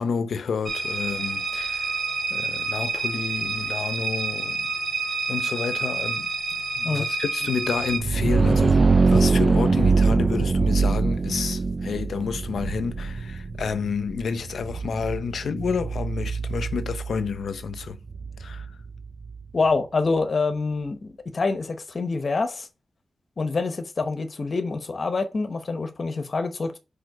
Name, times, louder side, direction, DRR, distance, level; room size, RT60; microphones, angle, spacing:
voice 1, 0.0-1.9 2.3-4.7 5.3-6.3 6.8-8.8 9.1-18.0 18.4-18.7, left 5 dB, 75° left, 0.7 m, -30 dB
sound 1, 0.7-8.0, right 3 dB, 50° right, 1.9 m, -28 dB
sound 2, 7.8-19.4, right 4 dB, 30° right, 0.3 m, -23 dB
voice 2, 19.5-22.7 23.4-26.8, left 3 dB, 40° left, 0.9 m, -26 dB
5.2 x 4.2 x 4.9 m
wide cardioid pair, 160°, 0 cm